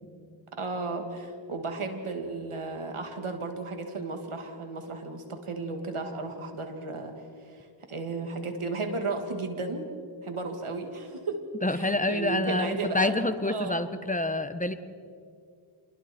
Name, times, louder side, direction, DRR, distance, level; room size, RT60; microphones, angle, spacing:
voice 1, 0.6-7.1 7.4-9.9 10.2-11.4 11.7-13.9, right 3 dB, 85° right, 5 dB, 2.5 m, -34 dB
voice 2, 11.6-14.7, left 2 dB, 15° left, 10 dB, 1.4 m, -27 dB
28.0 x 22.0 x 4.5 m, 2.3 s
cardioid pair, 40°, 49 cm